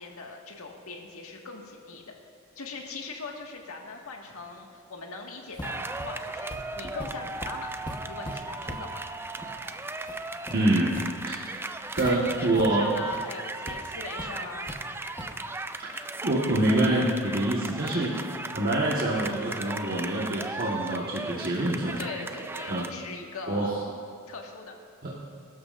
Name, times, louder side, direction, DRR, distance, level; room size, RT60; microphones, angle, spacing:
voice 1, 0.0-2.1 2.6-7.7 8.1-9.0 12.0-14.8 17.8-18.4 22.0-23.7 24.3-24.7, left 3 dB, 85° left, 1 dB, 1.8 m, -41 dB
sound 1, 5.5-12.1 12.5-12.7 13.0-13.2 13.7-13.8 14.2-14.8 15.2-15.4, left 1 dB, 20° left, 1.2 m, -41 dB
sound 2, 5.6-22.9, right 3 dB, 10° right, 0.4 m, -37 dB
voice 2, 10.5-11.4 12.0-12.9 15.8-15.9 16.2-18.1 18.5-22.0 22.7-22.9 23.5-23.8 25.0-25.2, right 1 dB, 45° right, -5 dB, 1.4 m, -26 dB
22.0 x 12.5 x 2.6 m, 2.2 s
head